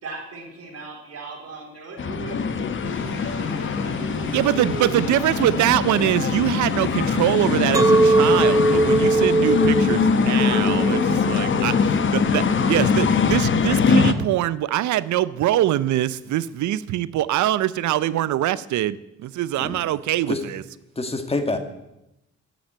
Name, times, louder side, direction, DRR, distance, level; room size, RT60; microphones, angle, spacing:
voice 1, 0.0-5.0, right 4 dB, 55° right, 0 dB, 3.9 m, -37 dB
sound 1, 2.0-14.1, left 5 dB, 40° left, 0.9 m, -22 dB
sound 2, 2.8-13.4, left 2 dB, 85° left, 3.6 m, -36 dB
voice 2, 4.3-20.6, right 13 dB, 70° right, 17 dB, 0.6 m, -23 dB
Chink clink, 7.7-12.9, right 2 dB, 10° right, 0.8 m, -21 dB
voice 3, 20.9-21.6, left 2 dB, 20° left, 7 dB, 1.6 m, -26 dB
9.0 x 7.2 x 8.9 m, 0.90 s
cardioid pair, 90°, 30 cm